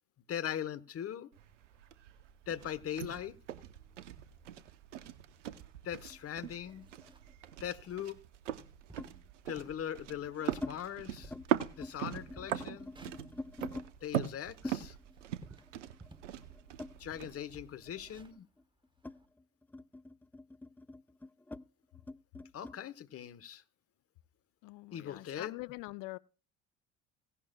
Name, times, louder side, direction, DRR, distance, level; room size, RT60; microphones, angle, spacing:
voice 1, 0.3-1.3 2.5-3.4 5.8-6.9 7.6-8.2 9.5-11.3 11.8-12.9 14.0-15.0 17.0-18.5 22.5-23.6 24.9-25.5, left 9 dB, 40° left, 1.1 m, -40 dB
sound 1, 1.3-18.3, right 11 dB, 85° right, 0.8 m, -41 dB
sound 2, 6.1-7.7 9.0-9.2 10.0-10.8 11.1-11.5 11.7-13.9 14.6-17.5 17.8-22.8, left 2 dB, 5° left, 0.4 m, -47 dB
sound 3, 6.2-6.3 6.6-7.4 7.8-8.0 8.5-8.6 8.9-9.2 9.6-9.9 10.3-12.0 12.3-13.8 14.2-16.4 16.7-16.8 17.1-19.3, right 3 dB, 15° right, 1.3 m, -57 dB
voice 2, 24.6-26.2, left 21 dB, 60° left, 0.6 m, -44 dB
17.0 x 11.0 x 2.3 m
hypercardioid pair, 65°, 35 cm